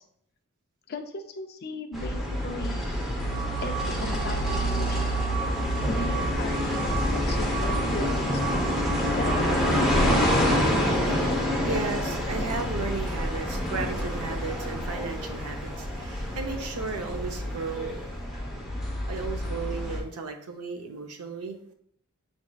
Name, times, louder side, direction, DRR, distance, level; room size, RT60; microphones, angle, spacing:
voice 1, 0.9-2.9 3.6-5.1 5.9-9.3, left 2 dB, 45° left, 4 dB, 0.5 m, -37 dB
sound 1, 1.9-20.0, equal, ahead, 0.9 m, -27 dB
sound 2, 3.3-10.3, right 6 dB, 55° right, 1.9 m, -37 dB
voice 2, 10.6-18.1 19.1-21.6, right 4 dB, 80° right, 4 dB, 0.6 m, -35 dB
6.1 x 3.6 x 2.3 m, 0.68 s
head